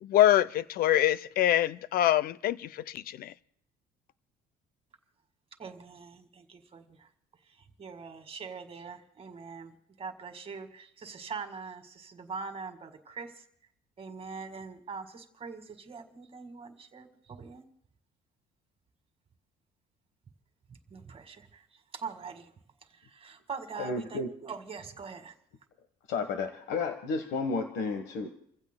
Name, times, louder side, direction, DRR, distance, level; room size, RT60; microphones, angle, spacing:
voice 1, 0.0-2.7 2.9-3.3, left 12 dB, 60° left, 0.5 m, -25 dB
voice 2, 5.6-7.1 7.6-13.3 14.0-17.6 20.9-21.6 21.9-22.5 22.9-25.3, right 5 dB, 35° right, 1.9 m, -43 dB
voice 3, 23.8-24.3 26.1-28.3, left 4 dB, 80° left, 1.3 m, -32 dB
30.0 x 15.5 x 2.2 m
cardioid pair, 110°, 17 cm